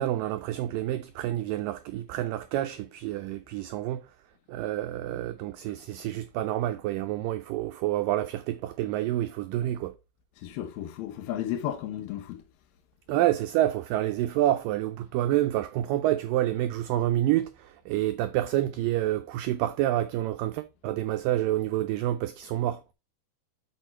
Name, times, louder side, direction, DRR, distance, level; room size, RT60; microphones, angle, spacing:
voice 1, 0.0-4.1 4.5-9.9 13.1-22.9, right 14 dB, 85° right, 1.9 m, -28 dB
voice 2, 10.4-12.4, left 11 dB, 80° left, 2.8 m, -33 dB
6.2 x 6.1 x 4.2 m
omnidirectional pair, 4.4 m